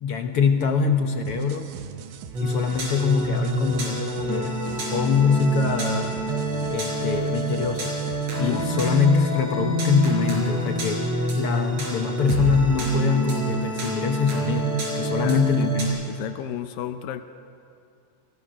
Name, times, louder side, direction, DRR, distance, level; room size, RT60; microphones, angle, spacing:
voice 1, 0.0-1.7 2.4-6.2 6.7-8.0 8.4-16.0, left 5 dB, 70° left, 5 dB, 1.4 m, -24 dB
sound 1, 1.3-9.1, right 8 dB, 85° right, 2.8 m, -42 dB
sound 2, 2.3-15.9, right 1 dB, 50° right, 5.5 m, -27 dB
voice 2, 8.4-8.7 15.2-15.7 16.1-17.2, left 11 dB, 85° left, 8 dB, 2.6 m, -32 dB
27.5 x 19.5 x 6.2 m, 2.6 s
omnidirectional pair, 3.9 m